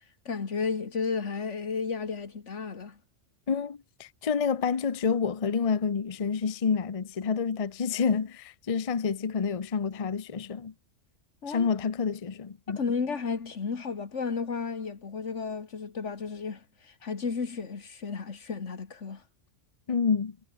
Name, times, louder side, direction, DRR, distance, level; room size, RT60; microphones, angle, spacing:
voice 1, 0.3-3.0 11.4-11.7 12.8-19.2, left 5 dB, 75° left, 2.1 m, -33 dB
voice 2, 3.5-10.7 11.5-12.8 19.9-20.4, left 6 dB, 35° left, 0.7 m, -28 dB
omnidirectional pair, 1.2 m